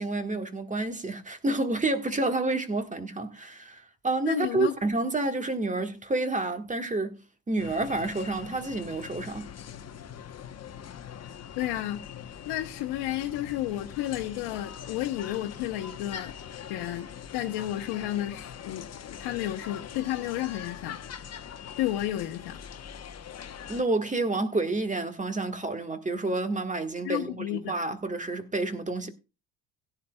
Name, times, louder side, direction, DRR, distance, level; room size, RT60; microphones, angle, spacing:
voice 1, 0.0-7.2 7.5-9.5 23.7-29.1, right 2 dB, 15° right, 1.6 m, -29 dB
voice 2, 4.2-4.7 11.6-12.0 12.4-16.3 16.7-17.1 17.3-21.0 21.8-22.6 27.0-27.7, left 13 dB, 65° left, 1.1 m, -32 dB
sound 1, 7.6-23.8, left 8 dB, 35° left, 1.1 m, -42 dB
17.0 x 10.0 x 2.3 m
hypercardioid pair, 70°, 43 cm